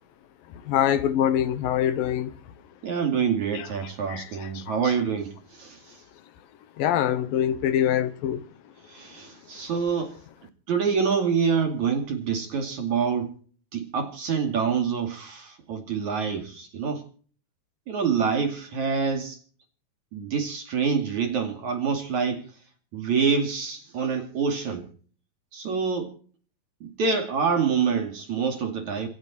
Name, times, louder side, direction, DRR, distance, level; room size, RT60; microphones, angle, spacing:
voice 1, 0.7-2.3 3.5-3.7 4.1-4.9 6.8-8.4, left 10 dB, 75° left, 2.7 m, -24 dB
voice 2, 2.8-6.0 8.9-10.2 10.7-13.3 13.7-17.0 17.9-19.4 20.1-22.4 22.9-24.9 25.5-26.1 26.8-29.1, right 6 dB, 55° right, 3.6 m, -26 dB
27.0 x 9.0 x 4.4 m
omnidirectional pair, 4.2 m